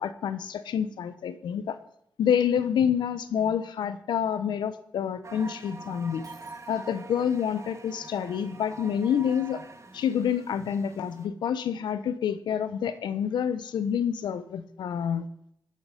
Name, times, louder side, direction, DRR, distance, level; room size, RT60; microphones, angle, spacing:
voice 1, 0.0-1.8 2.2-6.2 6.7-9.6 9.9-15.3, left 8 dB, 85° left, 13 dB, 0.4 m, -28 dB
sound 1, 5.2-11.3, right 3 dB, 40° right, 1.0 m, -45 dB
Shatter, 6.2-7.3, right 3 dB, 60° right, 3.7 m, -57 dB
8.7 x 5.6 x 5.0 m, 0.73 s
supercardioid pair, 45°, 8 cm